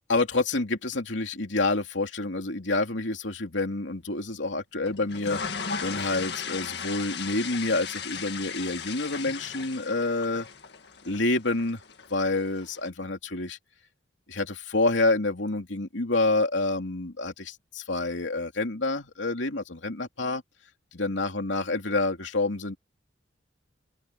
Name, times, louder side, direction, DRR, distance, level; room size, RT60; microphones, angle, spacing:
voice 1, 0.1-10.5 11.0-11.8 12.1-13.6 14.3-20.4 20.9-22.8, left 2 dB, 80° left, 3.0 m, -28 dB
sound 1, 4.9-12.9, left 6 dB, 65° left, 2.0 m, -37 dB
open air
head